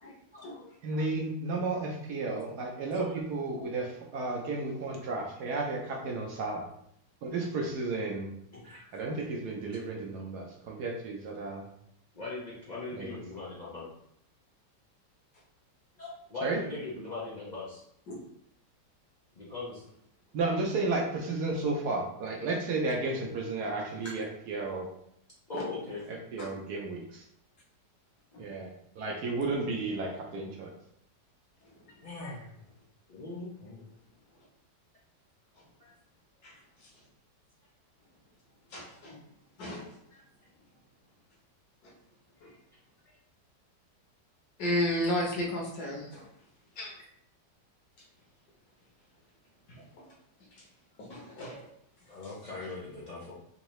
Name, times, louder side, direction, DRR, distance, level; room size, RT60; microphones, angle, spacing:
voice 1, 0.0-1.0 8.5-9.0 12.1-13.9 16.0-17.8 19.4-19.8 25.5-26.0 32.0-32.5 33.1-33.8 35.8-35.9 40.1-40.2 42.4-42.5 52.1-53.3, left 3 dB, 80° left, -8 dB, 0.4 m, -41 dB
voice 2, 0.8-6.7 7.2-8.3 8.9-11.7 12.9-13.1 16.4-16.6 20.3-24.9 26.1-27.2 28.4-28.7 29.0-30.7, right 3 dB, 70° right, 0 dB, 1.1 m, -33 dB
voice 3, 38.7-39.2 39.6-39.8 42.4-42.5 44.6-46.2 46.8-46.9 51.1-51.7, left 1 dB, 60° left, -2 dB, 1.3 m, -32 dB
3.8 x 2.7 x 3.0 m, 0.72 s
omnidirectional pair, 2.0 m